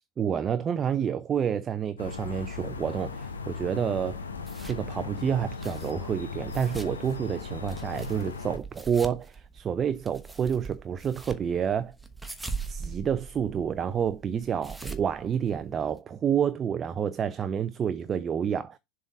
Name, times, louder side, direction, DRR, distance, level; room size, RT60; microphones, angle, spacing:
voice 1, 0.2-4.2 4.6-11.9 12.7-18.8, right 8 dB, 30° right, 0.5 m, -29 dB
Calm ambient forrest sounds, 2.0-8.6, left 5 dB, 80° left, 1.0 m, -37 dB
sound 1, 4.1-16.0, right 4 dB, 5° right, 1.2 m, -42 dB
7.1 x 3.7 x 5.2 m
figure-of-eight pair, 85°, 0 cm